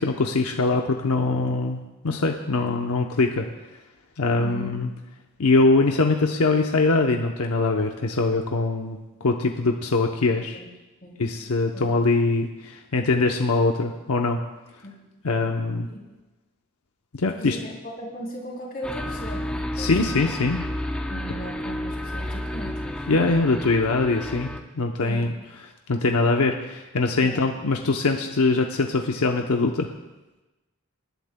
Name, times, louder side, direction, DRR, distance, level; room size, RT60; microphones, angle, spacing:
voice 1, 0.0-3.5 4.2-4.9 5.4-10.6 11.2-14.4 15.2-15.9 17.1-17.6 19.8-20.7 23.1-25.3 25.9-29.9, left 3 dB, 85° left, 3 dB, 0.8 m, -22 dB
voice 2, 4.4-4.7 10.3-10.7 11.0-11.2 11.7-11.9 14.8-15.1 15.9-16.0 17.3-20.1 21.1-23.1 25.0-25.3 27.2-27.4, equal, 40° left, -2 dB, 3.1 m, -38 dB
sound 1, 18.8-24.6, left 1 dB, 5° left, 0.6 m, -31 dB
27.0 x 11.5 x 2.2 m, 1.1 s
head